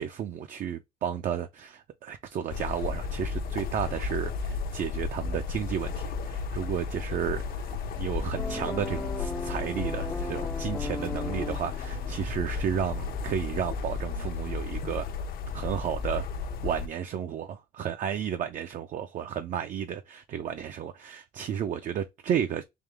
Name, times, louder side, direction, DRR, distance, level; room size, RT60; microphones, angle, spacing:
voice 1, 0.0-7.4 7.9-15.1 15.5-16.3 16.6-22.6, right 9 dB, 50° right, 0.4 m, -32 dB
sound 1, 2.5-16.9, left 5 dB, 65° left, 0.7 m, -33 dB
sound 2, 7.0-14.4, right 2 dB, 80° right, 1.4 m, -55 dB
sound 3, 8.4-13.4, left 3 dB, 10° left, 0.3 m, -38 dB
3.6 x 2.9 x 3.3 m
cardioid pair, 110°, 17 cm